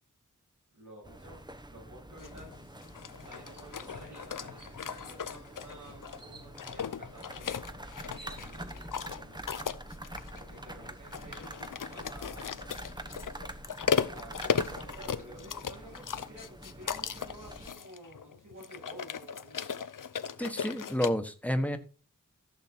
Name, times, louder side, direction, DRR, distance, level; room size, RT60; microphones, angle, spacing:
voice 1, 0.7-2.5 3.2-7.5 8.0-9.4 10.3-11.5 11.9-12.8 14.1-19.8 20.2-21.1, right 1 dB, 75° right, -6 dB, 7.3 m, -52 dB
sound 1, 1.0-17.7, right 1 dB, 15° right, 1.0 m, -46 dB
sound 2, 2.2-21.1, left 7 dB, 90° left, 0.7 m, -37 dB
sound 3, 3.5-3.7 4.2-4.3 4.6-5.1 6.2-6.5 7.6-7.7 7.9-8.9, right 3 dB, 55° right, 1.8 m, -52 dB
voice 2, 20.4-21.8, equal, 5° left, 7 dB, 1.4 m, -30 dB
14.5 x 6.6 x 4.5 m, 0.36 s
wide cardioid pair, 80°, 31 cm